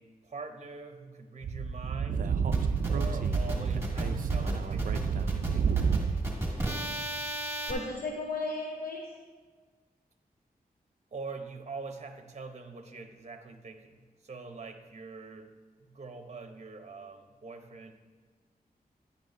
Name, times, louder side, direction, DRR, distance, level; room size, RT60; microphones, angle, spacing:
voice 1, 0.0-2.3 2.9-5.8 11.1-15.5 15.9-17.9, right 4 dB, 45° right, 6 dB, 0.8 m, -44 dB
Speech / Wind, 1.4-6.3, right 6 dB, 60° right, 0.4 m, -30 dB
sound 1, 2.5-7.7, right 1 dB, 15° right, 2.3 m, -33 dB
voice 2, 7.7-9.0, left 2 dB, 75° left, -1 dB, 0.9 m, -34 dB
10.5 x 10.0 x 2.6 m, 1.5 s
cardioid pair, 65°, 16 cm